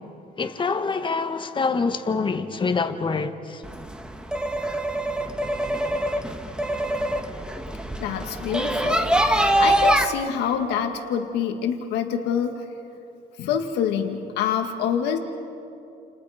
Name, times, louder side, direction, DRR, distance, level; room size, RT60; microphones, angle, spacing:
voice 1, 0.4-3.6, left 4 dB, 30° left, 1.7 m, -25 dB
sound 1, 3.6-10.0, right 1 dB, 5° right, 1.6 m, -24 dB
voice 2, 8.0-12.6 13.4-15.2, left 8 dB, 85° left, 2.1 m, -26 dB
30.0 x 29.5 x 5.2 m
cardioid pair, 110°, 17 cm